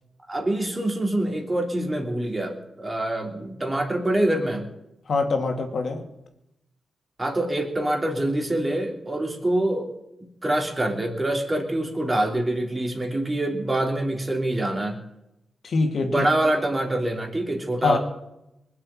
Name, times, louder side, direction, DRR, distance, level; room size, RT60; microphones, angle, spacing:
voice 1, 0.3-4.7 7.2-9.9 10.4-15.0 16.0-18.0, right 1 dB, 20° right, 3 dB, 3.4 m, -25 dB
voice 2, 5.1-6.0 15.6-16.3 17.8-18.0, left 3 dB, 60° left, 3 dB, 2.7 m, -24 dB
20.5 x 7.6 x 9.1 m, 0.88 s
cardioid pair, 70°, 0 cm